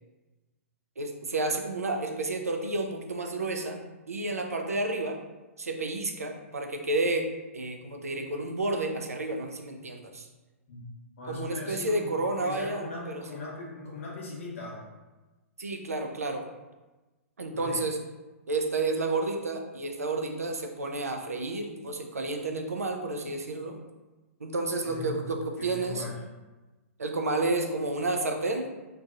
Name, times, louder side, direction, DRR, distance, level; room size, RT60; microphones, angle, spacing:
voice 1, 1.0-3.8 4.1-5.2 5.6-10.3 11.3-13.2 15.6-16.4 17.4-18.0 18.5-23.8 24.4-26.0 27.0-28.7, right 2 dB, 85° right, 4 dB, 0.4 m, -31 dB
voice 2, 11.2-14.8 17.6-17.8 24.8-26.2, left 3 dB, 60° left, -4 dB, 1.0 m, -39 dB
2.8 x 2.6 x 2.3 m, 1.1 s
figure-of-eight pair, 115°, 8 cm